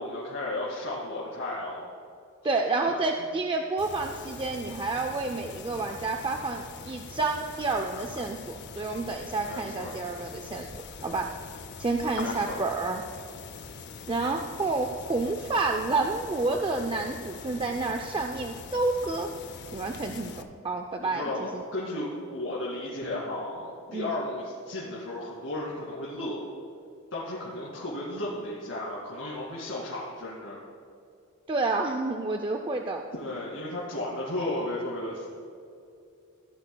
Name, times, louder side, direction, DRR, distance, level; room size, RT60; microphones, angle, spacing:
voice 1, 0.0-1.9 9.4-10.0 12.2-12.6 21.1-26.4 27.1-30.6 33.1-35.4, left 1 dB, 70° left, -8 dB, 2.3 m, -34 dB
voice 2, 2.4-10.7 11.0-11.3 11.8-13.0 14.1-19.3 19.7-21.6 23.9-24.1 31.5-33.0, right 3 dB, 25° right, 4 dB, 0.4 m, -29 dB
sound 1, 3.8-20.4, left 5 dB, 55° left, 0.5 m, -43 dB
16.5 x 10.5 x 2.3 m, 2.4 s
head